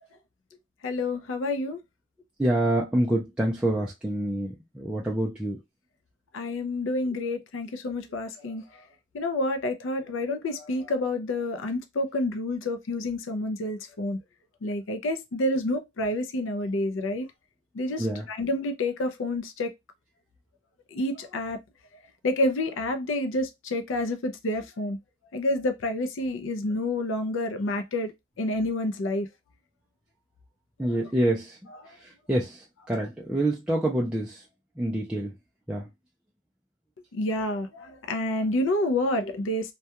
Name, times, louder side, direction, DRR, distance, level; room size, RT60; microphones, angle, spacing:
voice 1, 0.8-1.8 6.3-8.6 9.1-14.2 14.6-17.3 17.7-19.7 20.9-21.6 22.2-25.0 25.3-28.1 28.4-29.3 37.1-39.7, left 1 dB, 70° left, 0.4 m, -28 dB
voice 2, 2.4-5.6 18.0-18.2 30.8-31.6 32.0-34.4 34.8-35.3 35.7-35.9, right 1 dB, 5° right, 0.3 m, -27 dB
2.2 x 2.2 x 2.8 m
head